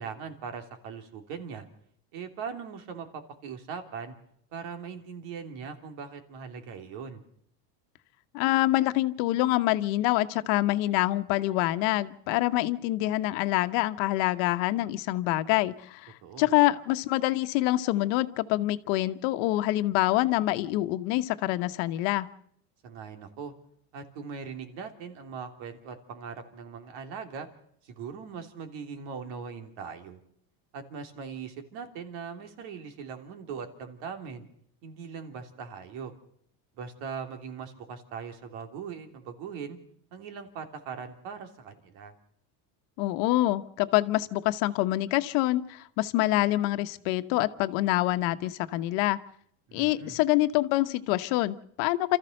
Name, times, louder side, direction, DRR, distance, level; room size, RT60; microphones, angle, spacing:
voice 1, 0.0-1.7 2.1-4.1 4.5-7.2 16.2-16.5 22.8-23.5 23.9-27.5 27.8-30.2 30.7-34.5 34.8-36.1 36.8-39.8 40.1-42.1 49.7-50.2, right 6 dB, 70° right, 6 dB, 3.3 m, -40 dB
voice 2, 8.3-22.3 43.0-49.2 49.7-52.2, left 17 dB, 75° left, 10 dB, 1.3 m, -26 dB
28.5 x 14.0 x 6.6 m, 0.69 s
cardioid pair, 130°, 49 cm